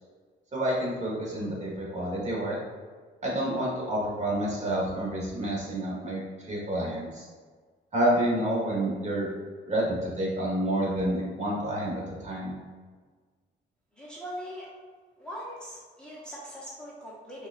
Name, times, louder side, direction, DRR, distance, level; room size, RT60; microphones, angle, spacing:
voice 1, 0.5-2.6 3.2-6.2 6.5-7.3 7.9-9.3 9.7-12.5, right 1 dB, 35° right, -4 dB, 1.4 m, -29 dB
voice 2, 14.0-14.7 15.2-17.5, equal, 5° left, -6 dB, 0.7 m, -41 dB
5.3 x 2.3 x 2.5 m, 1.5 s
cardioid pair, 90°, 20 cm